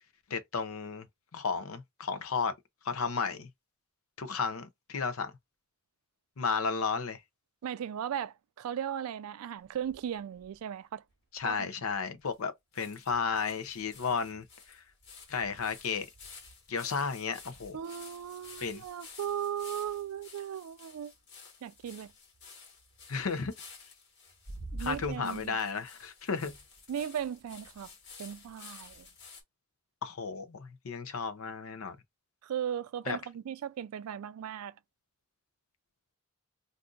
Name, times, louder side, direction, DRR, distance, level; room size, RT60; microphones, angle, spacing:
voice 1, 0.3-1.1 1.3-2.5 2.8-3.5 4.2-5.3 6.4-7.2 11.3-14.8 15.3-16.1 16.7-17.8 18.6-18.8 23.1-23.5 24.8-26.5 30.0-32.0 33.1-33.2, left 5 dB, 75° left, 0.6 m, -33 dB
voice 2, 7.6-11.0 11.4-11.7 17.7-21.1 21.6-22.1 24.7-25.6 26.9-27.9 28.2-29.1 32.4-34.7, right 9 dB, 90° right, 0.3 m, -37 dB
sound 1, 9.6-10.6 11.1-11.2 11.4-11.5 12.3-12.4 12.7-29.4, left 2 dB, 55° left, 1.5 m, -50 dB
2.6 x 2.4 x 3.8 m
head